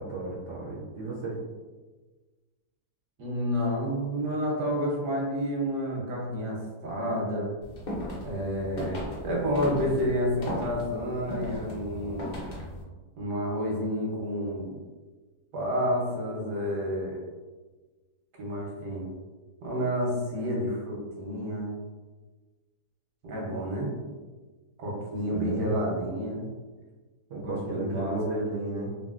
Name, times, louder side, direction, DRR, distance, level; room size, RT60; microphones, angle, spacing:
voice 1, 0.0-1.4 25.3-25.8 27.3-29.0, right 2 dB, 65° right, -4 dB, 0.7 m, -33 dB
voice 2, 3.2-7.5 8.2-12.3 13.2-14.8 15.5-17.2 18.4-19.1 19.6-21.7 23.2-23.9 24.8-26.4 27.3-28.2, equal, 85° right, -3 dB, 1.4 m, -30 dB
sound 1, 7.6-12.8, left 1 dB, 55° left, 0.5 m, -37 dB
3.0 x 2.5 x 2.4 m, 1.3 s
omnidirectional pair, 1.7 m